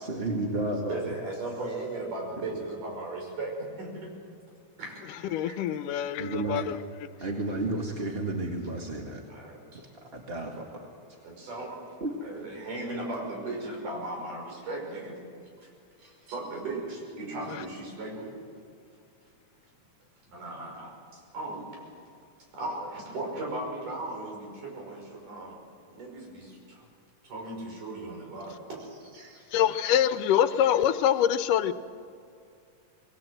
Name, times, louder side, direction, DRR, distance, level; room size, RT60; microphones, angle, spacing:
voice 1, 0.0-1.1 2.4-2.6 6.2-6.6 7.2-9.2 10.0-10.9 12.0-12.1, right 2 dB, 25° right, 1 dB, 1.4 m, -32 dB
voice 2, 0.9-4.1 4.8-5.7 6.2-6.3 9.3-9.9 11.2-11.8 12.2-15.2 15.6-15.7 16.0-18.3 20.3-21.9 22.5-25.6 25.9-26.8 27.2-29.6, right 2 dB, 80° right, 0 dB, 7.2 m, -37 dB
voice 3, 5.3-7.1 17.5-17.6 29.5-31.7, left 10 dB, 90° left, 11 dB, 2.4 m, -25 dB
26.5 x 21.0 x 7.8 m, 2.4 s
omnidirectional pair, 3.6 m